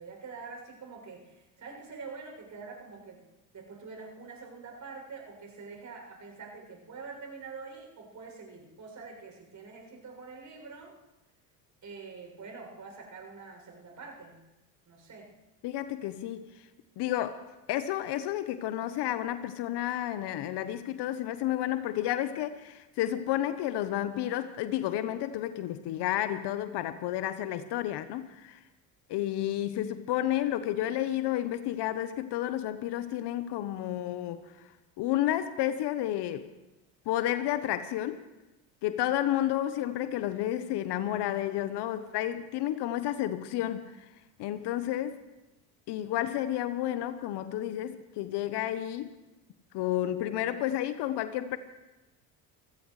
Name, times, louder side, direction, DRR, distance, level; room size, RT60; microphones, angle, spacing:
voice 1, 0.0-3.2 3.5-11.0 11.8-14.4 14.9-15.3, right 4 dB, 40° right, 0 dB, 7.1 m, -45 dB
voice 2, 15.6-16.5 17.0-28.6 29.1-34.4 35.0-36.5 37.1-38.2 38.8-44.0 44.4-45.2 45.9-49.1 49.7-51.6, left 12 dB, 60° left, 11 dB, 1.0 m, -31 dB
27.0 x 16.0 x 3.2 m, 1.0 s
supercardioid pair, 80°, 46 cm